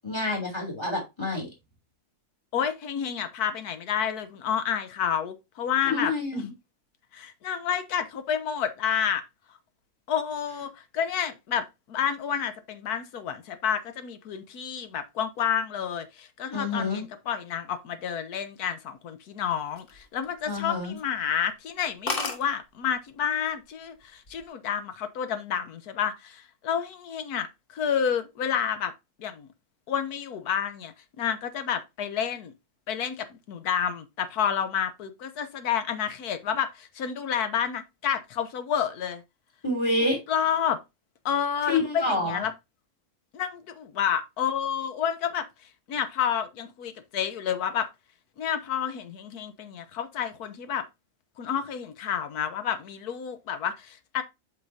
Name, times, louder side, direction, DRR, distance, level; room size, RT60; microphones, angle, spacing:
voice 1, 0.0-1.5 5.9-6.5 16.5-17.0 20.5-21.0 39.6-40.2 41.7-42.4, left 2 dB, 15° left, 3.1 m, -28 dB
voice 2, 2.5-6.4 7.1-9.2 10.1-28.9 29.2-29.5 29.9-32.5 32.9-39.2 40.3-40.8 41.2-42.5 43.3-45.5 45.9-47.9 48.4-50.8 51.4-54.2, left 8 dB, 90° left, 1.4 m, -30 dB
sound 1, 19.6-20.6 21.0-21.2 21.5-21.6 21.8-21.9 22.1-22.4 23.3-23.6 24.0-24.4, left 3 dB, 40° left, 1.2 m, -32 dB
8.0 x 5.5 x 2.7 m
omnidirectional pair, 1.6 m